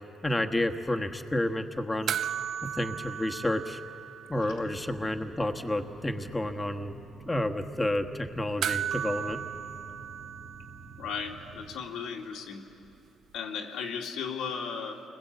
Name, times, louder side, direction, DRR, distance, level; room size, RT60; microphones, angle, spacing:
voice 1, 0.2-2.1 2.8-3.8 4.3-6.9 7.3-9.4, left 1 dB, 15° left, 5 dB, 1.3 m, -30 dB
sound 1, 2.1-4.7 5.0-5.1 8.6-11.2 13.4-13.5, right 9 dB, 70° right, 0.6 m, -35 dB
sound 2, 4.3-11.8, right 3 dB, 45° right, 2.2 m, -49 dB
voice 2, 11.0-12.7 13.3-15.0, left 6 dB, 90° left, 1 dB, 2.4 m, -36 dB
28.5 x 21.0 x 8.1 m, 2.9 s
cardioid pair, 90°, 0 cm